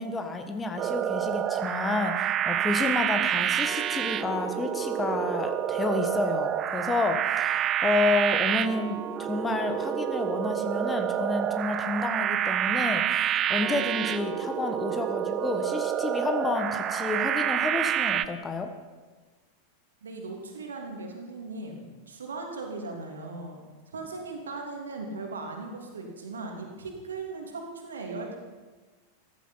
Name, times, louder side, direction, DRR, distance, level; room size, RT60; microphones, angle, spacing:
voice 1, 0.0-18.7, left 3 dB, 15° left, 7 dB, 1.3 m, -30 dB
sound 1, 0.8-18.3, right 10 dB, 30° right, 0.6 m, -28 dB
voice 2, 20.0-23.6 23.9-28.4, right 3 dB, 70° right, 2 dB, 2.9 m, -38 dB
14.0 x 14.0 x 5.7 m, 1.3 s
figure-of-eight pair, 90°, 0 cm